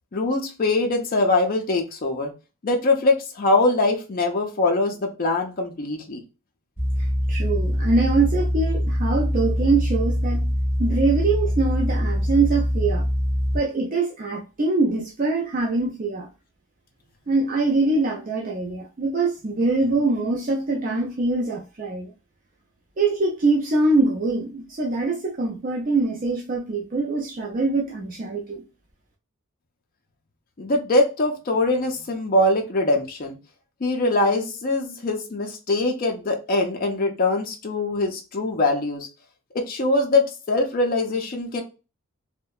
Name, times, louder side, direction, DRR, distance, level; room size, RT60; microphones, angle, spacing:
voice 1, 0.1-2.3 2.6-6.2 30.6-33.4 33.8-39.1 39.5-41.6, left 2 dB, 40° left, 0.4 m, -22 dB
sound 1, 6.8-13.6, equal, 10° left, 1.2 m, -23 dB
voice 2, 7.0-10.4 10.8-13.1 13.5-16.3 17.3-22.1 23.0-28.6, right 3 dB, 35° right, 0.4 m, -23 dB
2.7 x 2.1 x 2.3 m
head